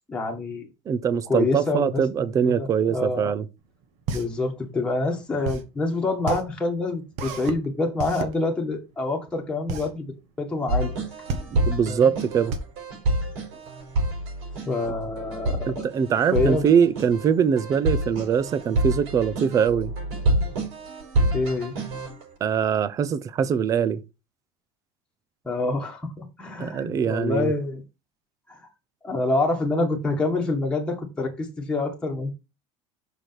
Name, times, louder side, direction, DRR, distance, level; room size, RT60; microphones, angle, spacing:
voice 1, 0.1-0.7 1.3-2.0 2.4-3.3 4.1-10.0 10.4-10.9 11.9-12.1 14.6-15.9 16.3-16.7 21.3-21.7 25.4-27.8 28.5-28.6 29.0-32.3, left 3 dB, 5° left, 1.8 m, -26 dB
voice 2, 0.9-3.4 11.5-12.5 15.7-19.9 22.4-24.0 26.6-27.5, right 7 dB, 25° right, 0.5 m, -22 dB
sound 1, 3.6-13.9, right 4 dB, 55° right, 1.5 m, -33 dB
sound 2, 10.7-22.2, right 1 dB, 80° right, 5.4 m, -27 dB
6.5 x 5.0 x 5.9 m
cardioid pair, 170°, 14 cm